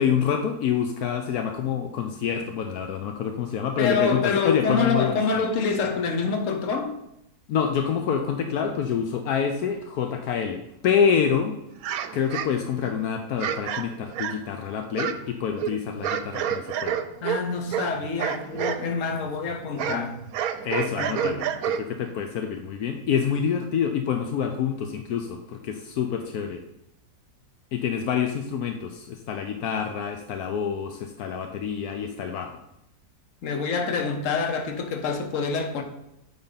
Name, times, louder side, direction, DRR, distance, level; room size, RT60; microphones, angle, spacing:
voice 1, 0.0-5.2 7.5-11.5 12.1-17.0 20.6-26.6 27.7-32.6, left 7 dB, 75° left, 1.2 m, -27 dB
voice 2, 3.8-7.0 17.2-20.2 21.0-21.6 33.4-35.8, left 5 dB, 60° left, 1.3 m, -26 dB
sound 1, 11.8-12.9 13.4-14.6 14.9-18.9 19.1-22.1, right 9 dB, 75° right, 1.0 m, -29 dB
8.7 x 4.0 x 5.7 m
omnidirectional pair, 1.6 m